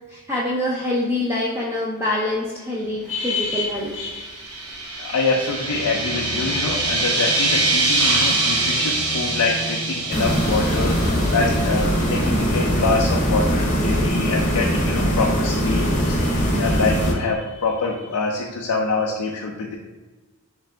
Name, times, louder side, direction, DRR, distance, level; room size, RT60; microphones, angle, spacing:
voice 1, 0.1-3.9, left 1 dB, 10° right, -5 dB, 0.5 m, -25 dB
Singing, 3.0-14.3, equal, 35° right, 1.3 m, -36 dB
voice 2, 3.1-4.4 5.0-19.8, left 3 dB, 85° left, 0 dB, 0.5 m, -25 dB
sound 1, 3.9-12.2, right 2 dB, 85° right, 1.0 m, -24 dB
sound 2, 10.1-17.1, equal, 35° left, 0.8 m, -21 dB
3.8 x 3.3 x 3.3 m, 1.2 s
head